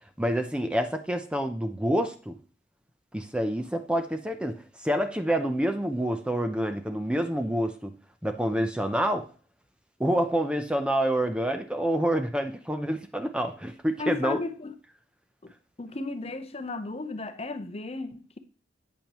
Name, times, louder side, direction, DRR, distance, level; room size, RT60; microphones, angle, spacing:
voice 1, 0.2-2.4 3.1-7.9 8.2-9.3 10.0-14.4, right 1 dB, 5° right, 0.6 m, -27 dB
voice 2, 14.0-14.7 15.4-15.5 15.8-18.4, left 3 dB, 35° left, 0.8 m, -34 dB
8.8 x 8.5 x 3.0 m
head